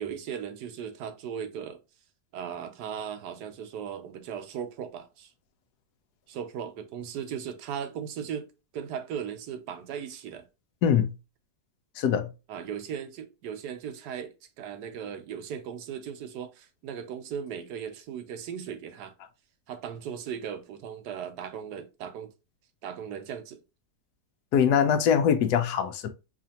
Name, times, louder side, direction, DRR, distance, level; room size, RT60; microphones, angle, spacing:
voice 1, 0.0-1.8 2.3-5.3 6.3-8.5 8.7-10.5 12.5-19.1 19.7-22.3 22.8-23.6, right 8 dB, 80° right, 1.2 m, -37 dB
voice 2, 10.8-11.1 12.0-12.3 24.5-26.1, left 8 dB, 80° left, 1.1 m, -23 dB
5.0 x 2.5 x 2.8 m
omnidirectional pair, 1.8 m